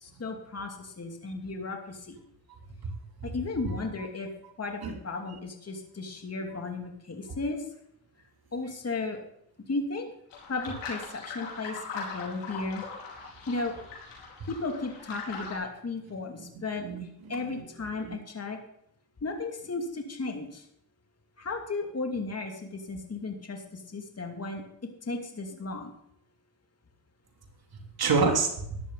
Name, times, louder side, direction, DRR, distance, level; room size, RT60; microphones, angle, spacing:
voice 1, 0.0-2.2 3.2-4.3 4.6-7.6 8.5-9.2 9.7-10.1 10.5-12.8 13.5-13.7 14.5-16.8 17.3-18.6 19.2-20.6 21.4-24.6 25.1-25.9, left 3 dB, 35° left, 3 dB, 2.6 m, -35 dB
sound 1, 10.3-15.5, left 4 dB, 85° left, 4.6 m, -40 dB
voice 2, 16.4-17.6 18.1-18.2 28.0-28.8, right 4 dB, 55° right, 2 dB, 3.2 m, -29 dB
14.5 x 11.0 x 4.0 m, 0.74 s
supercardioid pair, 60°, 43 cm